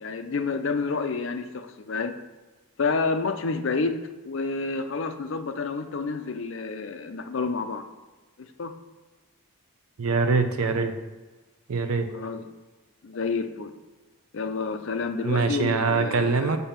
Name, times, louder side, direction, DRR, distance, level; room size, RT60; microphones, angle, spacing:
voice 1, 0.0-2.1 2.8-4.0 4.2-7.8 8.4-8.7 12.1-12.4 13.0-13.7 14.3-16.6, left 4 dB, 55° left, 8 dB, 0.5 m, -29 dB
voice 2, 10.0-10.9 11.7-12.1 15.2-16.6, right 4 dB, 80° right, 8 dB, 0.6 m, -23 dB
6.9 x 2.7 x 5.7 m, 1.2 s
head